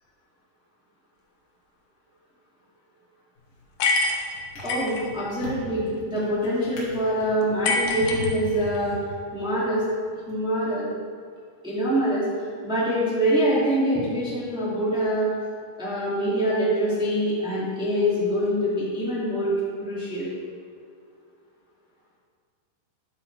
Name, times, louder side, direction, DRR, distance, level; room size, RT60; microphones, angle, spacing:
Drawer open or close, 3.4-3.8 4.3-9.5 10.2-10.4, left 4 dB, 55° left, 2.8 m, -39 dB
sound 1, 3.8-5.0 7.6-8.8, left 3 dB, 75° left, 2.2 m, -25 dB
voice 1, 4.6-9.0 9.3-9.8 10.3-10.9 11.6-12.2 12.6-15.3 15.8-19.5 19.8-20.3, equal, 5° right, -9 dB, 0.6 m, -25 dB
10.0 x 8.4 x 3.3 m, 2.1 s
omnidirectional pair, 5.1 m